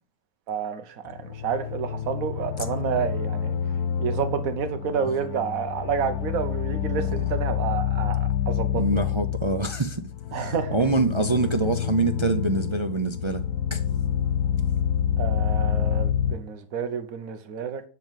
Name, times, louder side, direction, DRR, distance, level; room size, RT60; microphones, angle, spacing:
voice 1, 0.5-3.6 4.0-9.0 10.3-10.9 15.2-17.8, right 7 dB, 70° right, 1.4 m, -29 dB
sound 1, 1.1-16.3, left 9 dB, 80° left, 1.3 m, -27 dB
voice 2, 8.7-13.4 13.7-13.8, right 3 dB, 50° right, 0.3 m, -25 dB
10.5 x 3.9 x 7.4 m
omnidirectional pair, 1.6 m